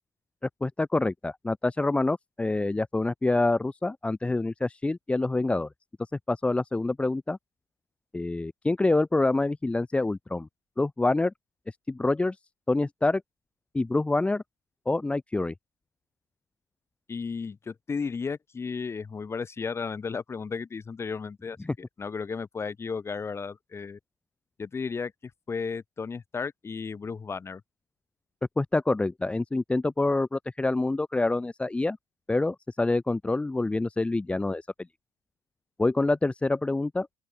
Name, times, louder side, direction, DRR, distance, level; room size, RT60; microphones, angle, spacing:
voice 1, 0.4-5.7 6.3-7.4 8.1-10.5 10.8-11.3 11.7-12.4 12.7-13.2 13.7-14.4 14.9-15.5 21.6-21.7 28.6-32.0 32.3-34.7 35.8-37.1, left 2 dB, 15° left, 1.1 m, -26 dB
voice 2, 17.1-21.6 22.0-24.0 24.6-27.6, left 5 dB, 30° left, 4.6 m, -34 dB
open air
hypercardioid pair, 75°, 9 cm